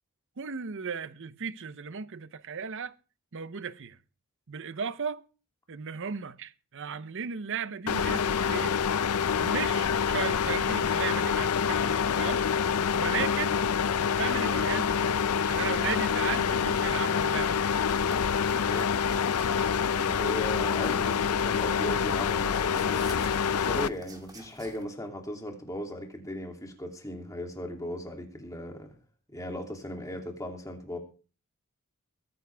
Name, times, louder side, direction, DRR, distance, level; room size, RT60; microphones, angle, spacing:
voice 1, 0.4-3.0 3.3-4.0 4.5-5.2 5.7-8.8 9.4-12.4 13.0-13.6 14.2-17.9, right 6 dB, 60° right, 0.8 m, -36 dB
sound 1, 7.9-23.9, left 7 dB, 90° left, 0.5 m, -26 dB
sound 2, 17.9-24.8, right 3 dB, 20° right, 2.5 m, -51 dB
voice 2, 18.6-18.9 19.9-28.9 29.3-31.0, left 1 dB, 15° left, 2.8 m, -37 dB
22.0 x 10.0 x 3.5 m
head